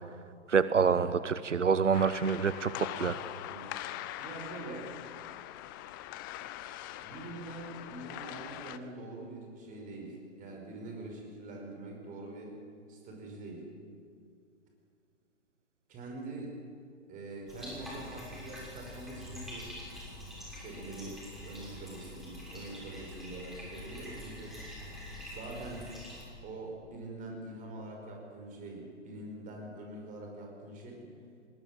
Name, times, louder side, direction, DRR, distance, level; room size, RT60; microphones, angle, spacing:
voice 1, 0.5-3.2, right 6 dB, 80° right, 14 dB, 0.9 m, -27 dB
sound 1, 1.9-8.8, left 14 dB, 20° left, 0.5 m, -42 dB
voice 2, 4.2-4.9 7.0-12.6 12.9-13.7 15.9-16.5 17.1-19.7 20.5-24.6 25.3-25.9 26.4-31.1, right 2 dB, 20° right, 1 dB, 5.2 m, -44 dB
Bathtub (filling or washing), 17.5-26.2, left 1 dB, ahead, 6.3 m, -45 dB
20.0 x 18.0 x 9.0 m, 2.3 s
figure-of-eight pair, 120°, 36 cm